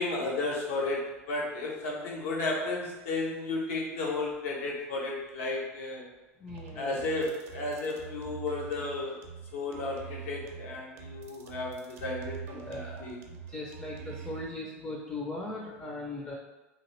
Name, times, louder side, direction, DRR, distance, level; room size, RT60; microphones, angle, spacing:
voice 1, 0.0-6.0 6.8-9.2 9.5-13.2, left 2 dB, 70° left, -2 dB, 0.8 m, -33 dB
voice 2, 6.4-7.1 12.5-13.1 13.5-16.3, left 2 dB, 20° left, -2 dB, 0.6 m, -39 dB
sound 1, 6.5-14.5, right 7 dB, 70° right, 0.5 m, -44 dB
2.9 x 2.5 x 3.1 m, 1.1 s
hypercardioid pair, 80°, 8 cm